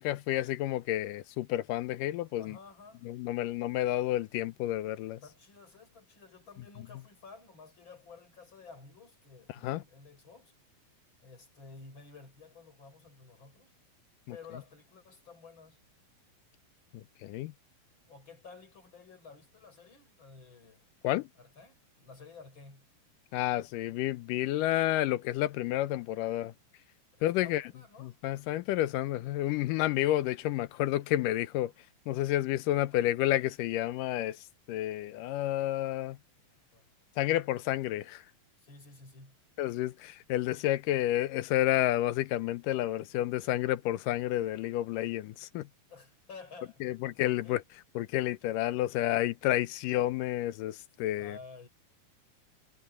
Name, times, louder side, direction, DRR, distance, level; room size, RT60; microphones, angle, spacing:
voice 1, 0.0-2.6 3.0-5.2 9.6-9.8 14.3-14.4 16.9-17.5 21.0-21.3 23.3-26.5 27.2-27.6 28.0-31.7 32.1-36.2 37.2-38.2 39.6-45.7 46.8-47.6 48.0-51.4, left 14 dB, 75° left, 2.3 m, -30 dB
voice 2, 2.4-3.1 5.2-10.5 11.2-13.7 14.3-15.8 18.1-20.9 21.4-22.9 27.2-28.2 32.9-33.1 36.7-36.9 38.6-39.4 45.9-47.6 51.2-51.7, left 4 dB, 30° left, 6.9 m, -52 dB
omnidirectional pair, 4.1 m